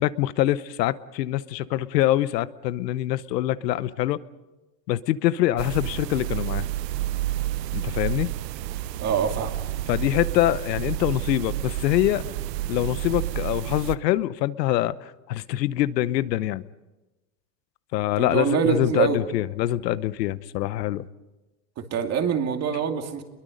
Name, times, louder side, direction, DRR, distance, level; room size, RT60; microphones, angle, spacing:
voice 1, 0.0-4.2 4.9-6.7 7.7-8.3 9.9-12.3 12.7-16.6 17.9-21.1, left 14 dB, 85° left, 16 dB, 1.0 m, -24 dB
sound 1, 5.6-13.9, right 14 dB, 80° right, 1.0 m, -30 dB
voice 2, 9.0-9.6 18.2-19.2 21.8-23.2, right 7 dB, 30° right, 5 dB, 2.5 m, -25 dB
28.5 x 22.0 x 5.2 m, 1.1 s
supercardioid pair, 135°, 49 cm